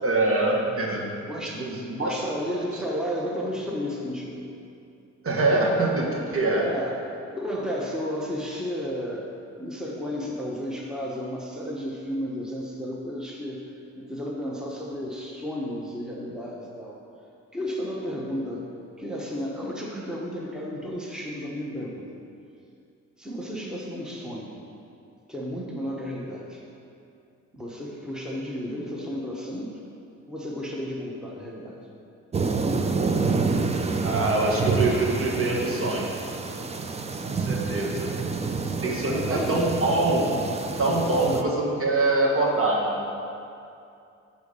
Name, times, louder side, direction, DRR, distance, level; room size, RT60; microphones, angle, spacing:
voice 1, 0.0-1.0 1.4-2.2 5.2-6.7 34.0-36.1 37.2-38.2 38.8-40.3 40.8-43.0, right 2 dB, 45° right, -1 dB, 1.6 m, -24 dB
voice 2, 1.3-1.6 1.9-4.5 6.6-9.3 9.6-13.6 13.9-17.0 17.5-18.7 19.0-22.2 23.2-24.6 25.3-26.6 27.5-29.8 30.3-31.8 39.1-39.7 41.3-41.5, equal, ahead, -3 dB, 1.1 m, -33 dB
sound 1, 32.3-41.4, right 4 dB, 20° right, 0.5 m, -28 dB
9.2 x 4.2 x 6.9 m, 2.6 s
cardioid pair, 90°, 30 cm